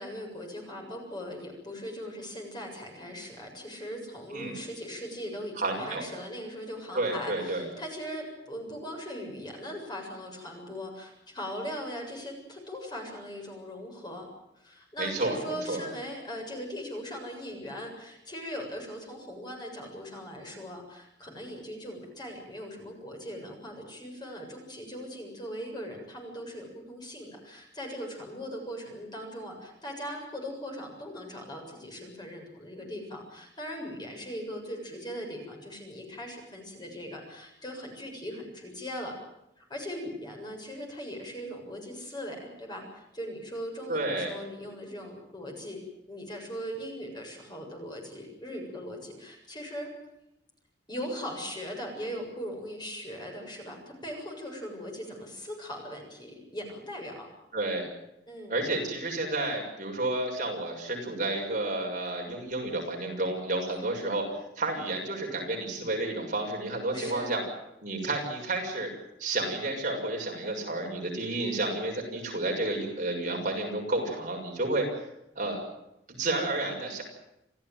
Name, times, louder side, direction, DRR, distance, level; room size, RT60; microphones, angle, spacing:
voice 1, 0.0-14.3 14.6-39.1 39.6-45.8 46.1-49.9 50.9-57.3 58.3-58.6 63.7-63.9 66.9-67.3, equal, 25° left, 1 dB, 7.3 m, -39 dB
voice 2, 5.6-6.0 6.9-7.7 15.0-15.4 15.7-15.9 43.9-44.3 57.5-57.9 58.5-64.2 64.6-67.4 67.8-68.9 69.2-74.9 75.3-75.6 76.1-77.0, right 2 dB, 45° right, 1 dB, 6.8 m, -31 dB
28.5 x 15.5 x 9.1 m, 0.84 s
head